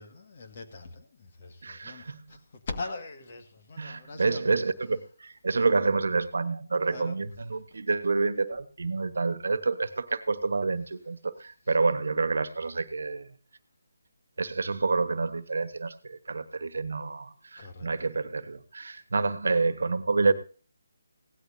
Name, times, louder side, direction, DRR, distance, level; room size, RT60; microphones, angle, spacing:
voice 1, 0.0-2.4 2.7-4.5 6.9-7.2 17.6-17.9 18.9-19.0, left 3 dB, 40° left, 6 dB, 1.9 m, -41 dB
voice 2, 1.6-2.4 3.8-13.3 14.4-20.3, right 3 dB, 70° right, 12 dB, 1.4 m, -28 dB
17.0 x 13.0 x 2.8 m, 0.38 s
hypercardioid pair, 165°, 0 cm